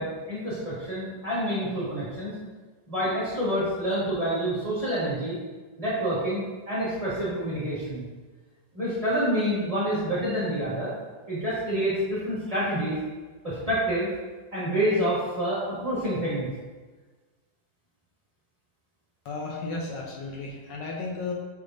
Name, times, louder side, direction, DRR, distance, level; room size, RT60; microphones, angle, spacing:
voice 1, 0.0-2.3 2.9-5.4 5.8-8.0 8.7-10.9 11.3-13.0 13.4-14.1 14.5-16.5, equal, 20° right, -10 dB, 1.5 m, -27 dB
voice 2, 19.2-21.3, left 3 dB, 75° left, -2 dB, 1.3 m, -34 dB
6.3 x 3.4 x 2.5 m, 1.3 s
omnidirectional pair, 2.1 m